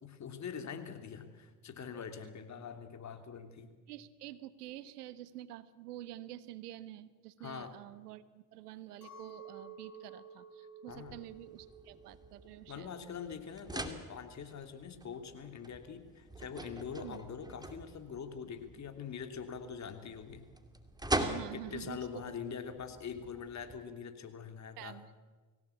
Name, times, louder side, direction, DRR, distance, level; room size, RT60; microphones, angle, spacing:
voice 1, 0.0-3.7 7.4-7.8 10.9-11.2 12.7-20.4 21.5-25.0, left 6 dB, 35° left, 6 dB, 3.1 m, -44 dB
voice 2, 3.9-12.9 17.0-17.2 21.2-22.2 24.8-25.1, right 13 dB, 80° right, 15 dB, 1.3 m, -48 dB
Chink clink, 9.0-14.5, right 5 dB, 85° left, 6.1 m, -53 dB
sound 1, 10.9-23.8, right 1 dB, 10° right, 2.6 m, -43 dB
25.0 x 17.0 x 8.6 m, 1.3 s
hypercardioid pair, 70°, 46 cm